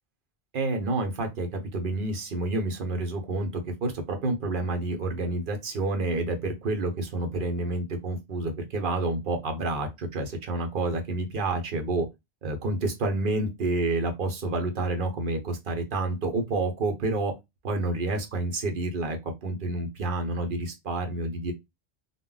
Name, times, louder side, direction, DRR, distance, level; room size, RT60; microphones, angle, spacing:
voice 1, 0.5-3.5 3.8-12.1 12.4-17.3 17.6-21.5, right 2 dB, 55° right, 0.8 m, -29 dB
2.1 x 2.1 x 3.7 m
omnidirectional pair, 1.1 m